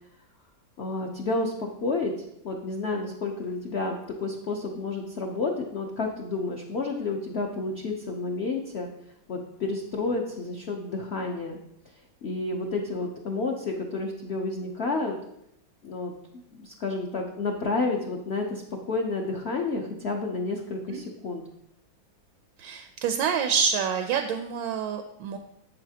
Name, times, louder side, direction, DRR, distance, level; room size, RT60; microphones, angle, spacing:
voice 1, 0.8-2.1 2.4-8.9 9.3-11.6 12.2-15.2 15.8-16.1 16.6-21.4, left 3 dB, 70° left, 1 dB, 0.6 m, -30 dB
voice 2, 22.6-25.4, right 7 dB, 80° right, 6 dB, 1.2 m, -27 dB
8.1 x 7.7 x 2.8 m, 0.78 s
omnidirectional pair, 2.0 m